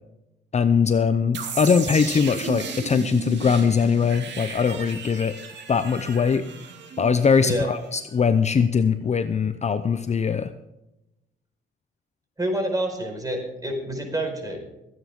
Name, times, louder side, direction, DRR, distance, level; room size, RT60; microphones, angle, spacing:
voice 1, 0.5-5.3 5.7-6.4 7.0-10.5, left 6 dB, 35° left, 11 dB, 0.7 m, -21 dB
sound 1, 1.3-8.1, right 6 dB, 65° right, 2.6 m, -35 dB
voice 2, 12.4-14.6, right 1 dB, 20° right, 3 dB, 4.9 m, -27 dB
23.5 x 9.3 x 3.7 m, 0.94 s
cardioid pair, 90°, 20 cm